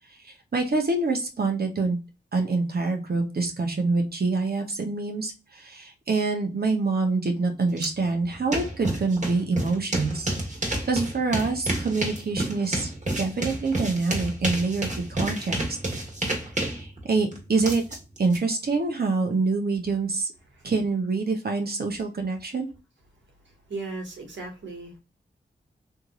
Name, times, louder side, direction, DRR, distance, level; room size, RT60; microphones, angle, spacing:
voice 1, 0.2-2.0 2.3-10.3 10.6-12.9 13.2-15.6 16.7-17.8 18.2-20.3 20.6-22.7, right 3 dB, 55° right, 3 dB, 1.1 m, -26 dB
sound 1, 7.8-7.9 8.2-18.4, right 1 dB, 40° right, 1.7 m, -30 dB
voice 2, 23.7-25.0, right 3 dB, 80° right, 0 dB, 1.6 m, -36 dB
3.6 x 3.0 x 2.5 m, 0.29 s
cardioid pair, 40°, 19 cm